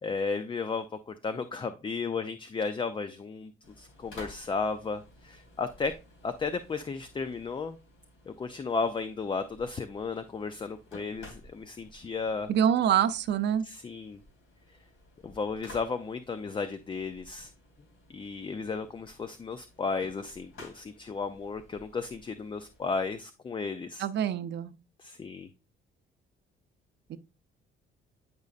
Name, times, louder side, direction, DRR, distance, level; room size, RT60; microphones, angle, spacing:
voice 1, 0.0-3.5 3.8-6.0 6.2-7.8 8.3-12.5 13.6-14.2 15.2-17.5 18.1-24.1 25.0-25.5, left 4 dB, 25° left, 0.4 m, -34 dB
sound 1, 3.6-23.2, left 1 dB, 80° left, 3.1 m, -54 dB
voice 2, 12.5-13.7 24.0-24.7 27.1-27.2, right 9 dB, 60° right, 0.6 m, -26 dB
9.4 x 5.2 x 2.4 m
cardioid pair, 115°, 21 cm